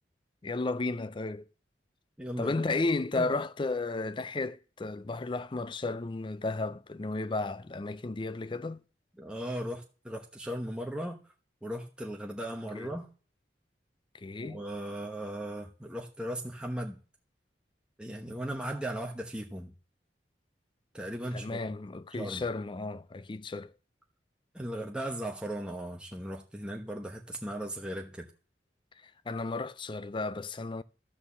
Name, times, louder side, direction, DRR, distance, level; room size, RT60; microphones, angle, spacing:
voice 1, 0.4-1.5 2.4-8.8 12.7-12.9 14.1-14.6 21.3-23.7 29.3-30.8, left 3 dB, 30° left, 0.4 m, -33 dB
voice 2, 2.2-2.5 3.1-3.3 9.2-11.2 11.6-13.1 14.4-17.0 18.0-19.7 20.9-21.6 22.1-22.4 24.5-28.3, right 1 dB, 5° right, 1.0 m, -37 dB
12.5 x 4.5 x 7.1 m
head